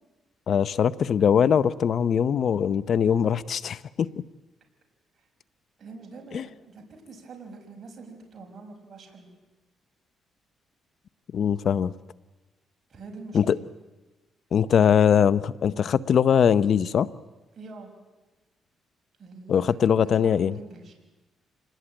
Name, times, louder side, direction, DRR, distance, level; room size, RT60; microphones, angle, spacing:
voice 1, 0.5-4.1 6.3-6.4 11.3-11.9 13.3-13.6 14.5-17.1 19.5-20.5, left 8 dB, 60° left, 16 dB, 0.8 m, -21 dB
voice 2, 5.8-9.3 12.9-13.6 17.5-17.9 19.2-20.9, right 3 dB, 45° right, 2 dB, 5.7 m, -44 dB
27.5 x 20.0 x 9.0 m, 1.2 s
cardioid pair, 90°, 0 cm